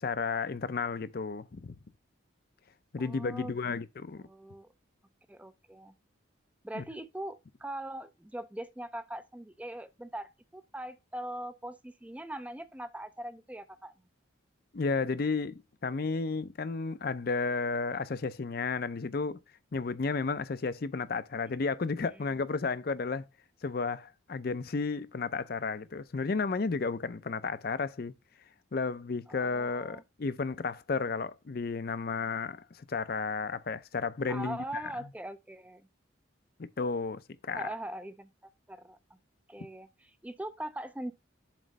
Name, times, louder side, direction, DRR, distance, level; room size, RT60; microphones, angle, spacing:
voice 1, 0.0-1.8 2.9-4.2 6.7-6.8 14.7-19.4 19.7-23.2 23.6-28.1 28.7-34.8 36.8-37.7, left 4 dB, 50° left, 0.5 m, -33 dB
voice 2, 3.0-3.7 4.2-4.7 5.3-5.9 6.6-13.9 22.1-22.4 29.3-30.0 34.3-35.9 37.5-38.3 38.7-39.0 39.5-41.1, right 1 dB, 5° right, 0.4 m, -41 dB
7.4 x 3.1 x 5.3 m
head